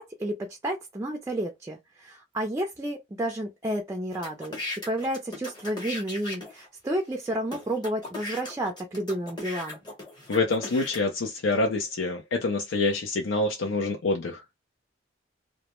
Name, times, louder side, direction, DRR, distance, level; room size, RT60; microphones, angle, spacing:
voice 1, 0.0-4.6 4.9-9.8, right 1 dB, 15° right, 0.3 m, -31 dB
sound 1, 4.1-6.7 7.2-7.3 7.5-11.0, left 2 dB, 20° left, 0.8 m, -37 dB
voice 2, 10.3-14.6, left 3 dB, 80° left, 0.5 m, -26 dB
2.1 x 2.0 x 2.9 m
head